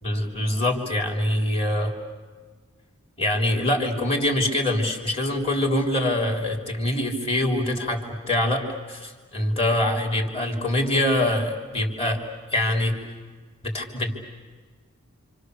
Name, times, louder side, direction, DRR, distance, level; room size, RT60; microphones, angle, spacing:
voice 1, 0.0-1.9 3.2-12.2 12.5-13.0 13.6-14.1, left 1 dB, 25° left, 2 dB, 3.5 m, -24 dB
29.0 x 27.0 x 6.7 m, 1.5 s
head